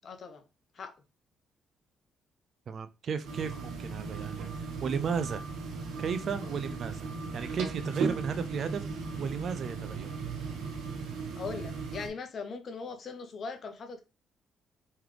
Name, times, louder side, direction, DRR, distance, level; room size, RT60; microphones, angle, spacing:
voice 1, 0.0-0.4 0.7-0.9 11.4-14.0, left 5 dB, 55° left, 0.9 m, -40 dB
voice 2, 2.7-5.4 6.0-8.8 9.2-10.1, right 6 dB, 55° right, 0.4 m, -34 dB
sound 1, 3.2-12.1, right 4 dB, 85° right, 1.1 m, -37 dB
3.6 x 3.2 x 3.3 m
cardioid pair, 90°, 0 cm